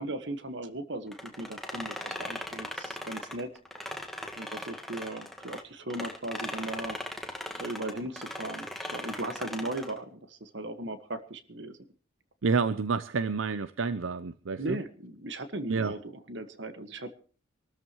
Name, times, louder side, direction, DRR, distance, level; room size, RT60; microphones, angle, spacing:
voice 1, 0.0-3.5 4.4-7.0 7.6-11.8 14.6-17.2, right 2 dB, 60° right, 10 dB, 1.6 m, -37 dB
sound 1, 1.1-5.6 5.9-10.0, left 1 dB, ahead, 1.6 m, -39 dB
voice 2, 12.4-14.8 15.7-15.9, right 4 dB, 80° right, 14 dB, 0.6 m, -29 dB
26.0 x 13.5 x 3.1 m, 0.39 s
head